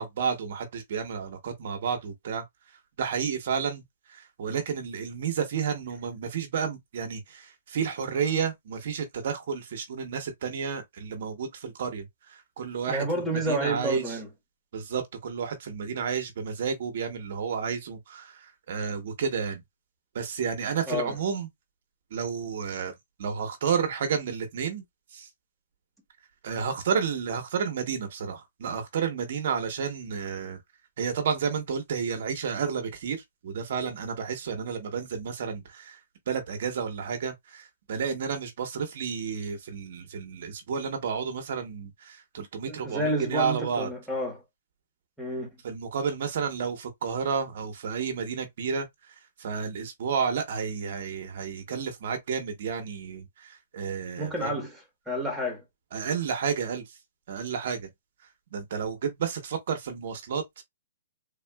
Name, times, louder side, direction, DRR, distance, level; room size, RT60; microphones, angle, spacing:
voice 1, 0.0-2.4 3.0-3.8 4.1-13.0 13.5-14.2 14.7-19.6 20.1-21.5 22.1-22.9 23.2-24.8 25.1-25.3 26.4-30.6 31.0-36.0 36.3-43.9 45.6-48.9 49.4-54.6 55.9-56.8 57.3-57.9 58.5-60.6, right 6 dB, 55° right, 0.9 m, -31 dB
voice 2, 12.9-14.3 20.9-21.2 42.7-44.4 45.2-45.5 54.2-55.6, right 1 dB, ahead, 1.1 m, -30 dB
3.6 x 2.4 x 2.2 m
hypercardioid pair, 165°, 0 cm